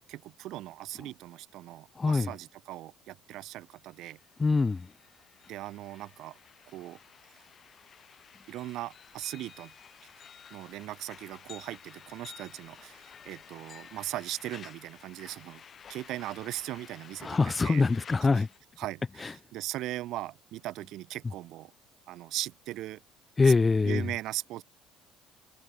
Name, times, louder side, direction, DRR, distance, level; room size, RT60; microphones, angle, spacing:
voice 1, 0.1-4.2 5.5-6.4 6.7-7.0 8.5-9.7 10.5-15.6 15.9-17.8 18.3-18.4 18.8-21.7 22.1-23.0 23.4-23.5 23.8-24.6, right 15 dB, 65° right, 4.2 m, -39 dB
voice 2, 2.0-2.3 4.4-4.9 17.2-18.5 19.2-19.3 23.4-24.0, left 4 dB, 25° left, 0.3 m, -24 dB
sound 1, 3.5-3.6 3.8-18.6, left 7 dB, 45° left, 2.3 m, -52 dB
hypercardioid pair, 65°, 0 cm